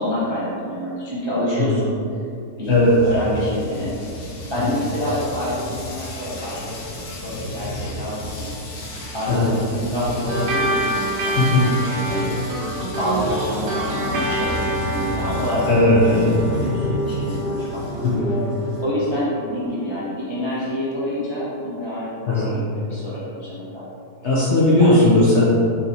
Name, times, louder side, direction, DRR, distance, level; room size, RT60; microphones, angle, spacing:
voice 1, 0.0-1.9 2.6-2.8 3.0-6.8 7.1-8.5 9.1-11.3 11.6-12.2 13.0-18.0 18.8-23.8 24.8-25.1, equal, 35° right, -9 dB, 0.4 m, -27 dB
sound 1, 2.6-18.8, left 1 dB, 90° left, 1.5 m, -31 dB
voice 2, 2.7-3.0 9.3-9.6 11.4-11.7 15.7-16.3 18.0-18.4 22.3-22.6 24.2-25.4, left 2 dB, 65° left, -7 dB, 0.7 m, -17 dB
sound 2, 10.3-19.1, right 1 dB, 80° right, 1.3 m, -27 dB
3.9 x 2.9 x 3.9 m, 2.6 s
omnidirectional pair, 1.8 m